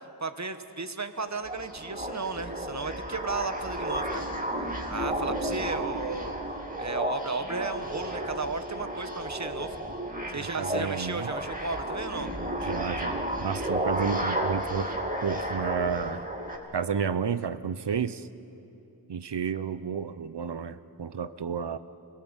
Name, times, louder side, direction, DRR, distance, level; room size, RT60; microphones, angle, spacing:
voice 1, 0.2-4.3 4.9-6.3 6.8-9.8 10.3-12.3, right 4 dB, 40° right, 1.3 m, -34 dB
sound 1, 1.3-16.6, right 1 dB, 20° right, 2.7 m, -32 dB
voice 2, 10.4-11.3 12.6-14.9 15.2-16.3 16.7-18.3 19.1-21.8, right 7 dB, 65° right, 0.9 m, -31 dB
26.5 x 19.5 x 8.1 m
wide cardioid pair, 80°, 44 cm